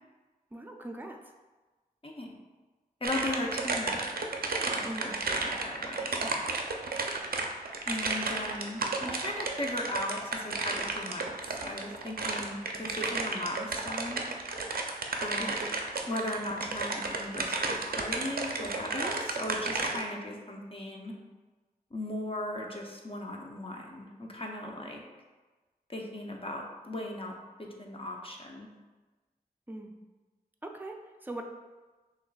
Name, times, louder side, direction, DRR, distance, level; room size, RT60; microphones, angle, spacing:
voice 1, 0.5-1.2 4.8-5.1 15.4-15.6 29.7-30.0 30.6-31.4, right 1 dB, 10° right, 3 dB, 0.4 m, -41 dB
voice 2, 2.0-2.4 3.0-4.1 4.7-5.1 5.4-6.3 7.9-14.2 15.1-15.6 16.1-21.2 21.9-25.0 25.9-28.7, left 1 dB, 35° left, 0 dB, 0.6 m, -37 dB
sound 1, 3.0-20.0, right 3 dB, 70° right, 0.4 m, -33 dB
6.0 x 2.4 x 2.3 m, 1.2 s
wide cardioid pair, 55°, 16 cm